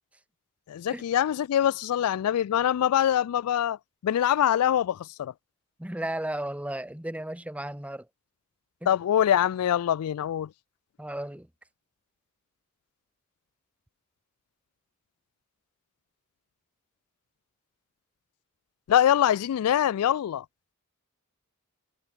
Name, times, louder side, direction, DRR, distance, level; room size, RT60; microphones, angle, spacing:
voice 1, 0.7-3.8 4.0-5.3 8.9-10.5 18.9-20.4, left 10 dB, 80° left, 0.3 m, -24 dB
voice 2, 5.8-8.1 8.8-8.9 11.0-11.5, right 1 dB, 5° right, 0.9 m, -34 dB
head